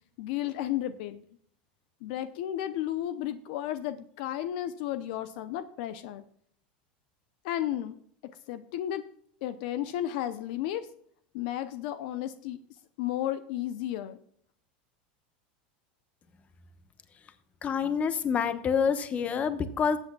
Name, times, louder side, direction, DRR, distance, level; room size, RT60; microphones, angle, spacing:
voice 1, 0.2-1.2 2.0-6.2 7.4-8.0 8.2-9.1 9.4-10.9 11.3-12.6 13.0-14.2, left 12 dB, 70° left, 12 dB, 0.6 m, -33 dB
voice 2, 17.6-20.0, left 6 dB, 30° left, 11 dB, 1.0 m, -27 dB
19.0 x 8.1 x 2.3 m, 0.65 s
supercardioid pair, 120°, 5 cm